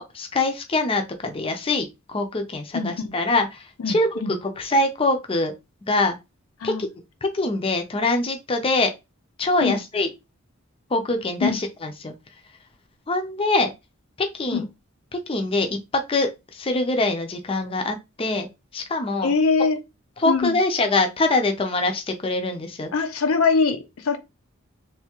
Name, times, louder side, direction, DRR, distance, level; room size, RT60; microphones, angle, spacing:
voice 1, 0.0-5.5 5.9-6.2 6.6-6.9 7.2-8.9 9.4-10.1 10.9-12.1 13.1-13.7 14.2-14.7 15.3-15.8 16.1-16.3 16.5-18.5 18.7-19.3 20.2-22.9, left 2 dB, 25° left, 0.5 m, -24 dB
voice 2, 2.7-3.1 3.8-4.3 6.6-6.9 9.6-9.8 11.4-11.6 14.5-14.7 19.2-19.8 20.3-20.6 22.9-24.2, left 4 dB, 85° left, 0.6 m, -23 dB
3.4 x 2.7 x 2.9 m
head